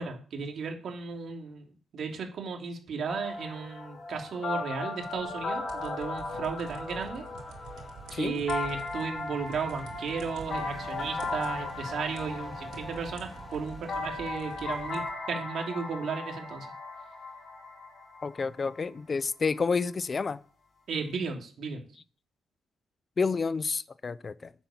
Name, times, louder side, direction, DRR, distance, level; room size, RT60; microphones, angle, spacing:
voice 1, 0.0-1.6 1.9-7.2 8.1-16.7 20.9-21.8, right 5 dB, 50° right, 3.1 m, -35 dB
sound 1, 3.1-18.8, left 3 dB, 45° left, 4.1 m, -37 dB
sound 2, 5.1-15.1, right 6 dB, 90° right, 3.2 m, -49 dB
sound 3, 7.2-14.9, equal, 5° left, 3.9 m, -50 dB
voice 2, 8.1-8.4 18.2-20.4 23.2-24.5, left 4 dB, 30° left, 0.5 m, -29 dB
10.0 x 8.1 x 7.2 m
cardioid pair, 145°, 0 cm